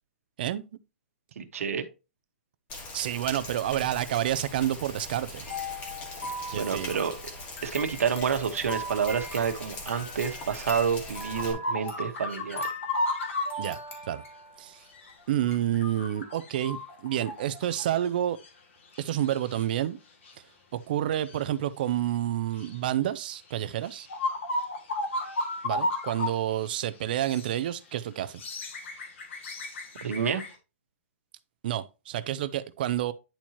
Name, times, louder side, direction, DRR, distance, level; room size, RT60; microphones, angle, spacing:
voice 1, 1.4-1.8 6.5-7.1 7.6-12.6 30.0-30.4, right 7 dB, 85° right, 1.3 m, -28 dB
Rain, 2.7-11.5, left 2 dB, 20° left, 1.4 m, -41 dB
voice 2, 2.9-5.5 6.5-6.9 13.6-13.8 14.1-14.2 14.6-14.8 15.3-18.4 19.0-20.0 20.7-24.1 25.6-28.4 31.6-33.1, right 12 dB, 40° right, 0.5 m, -29 dB
sound 1, 5.4-14.6 15.1-15.2 15.5-15.6, left 1 dB, 75° left, 2.7 m, -40 dB
sound 2, 10.7-13.6 14.9-15.1 15.4-18.1 18.4-18.5 18.9-19.6 20.2-20.3 21.2-21.4 22.6-22.8 23.5-23.6 23.8-26.3 26.7-26.8 27.2-27.6 28.2-30.5, left 2 dB, 60° left, 2.0 m, -34 dB
10.0 x 4.5 x 2.9 m
hypercardioid pair, 170°, 7 cm